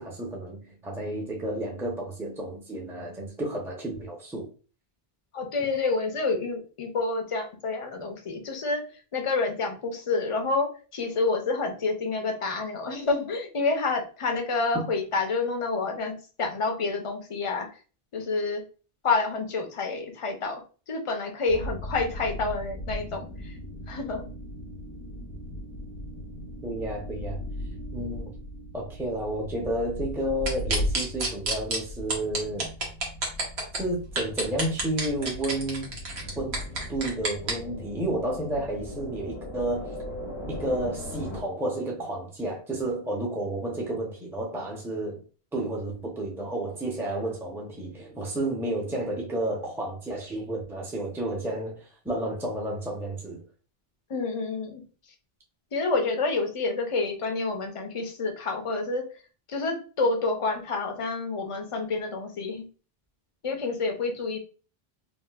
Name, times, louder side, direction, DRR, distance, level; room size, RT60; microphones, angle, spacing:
voice 1, 0.0-4.5 5.6-5.7 14.7-14.9 26.6-27.4 27.9-28.3 28.7-32.7 33.7-35.9 36.4-36.6 36.9-40.0 40.5-45.2 45.5-53.4, right 1 dB, 5° right, 0.7 m, -31 dB
voice 2, 5.3-8.8 9.1-17.7 18.1-18.6 19.0-20.6 20.9-23.5 23.9-24.2 54.1-54.8 55.7-59.0 59.5-62.7 63.4-64.4, left 3 dB, 35° left, 0.7 m, -28 dB
sound 1, 21.5-41.4, left 1 dB, 80° left, 1.3 m, -38 dB
sound 2, 30.5-31.8 32.1-33.8 34.2-37.5, right 2 dB, 85° right, 1.2 m, -28 dB
3.7 x 2.5 x 2.3 m
omnidirectional pair, 1.0 m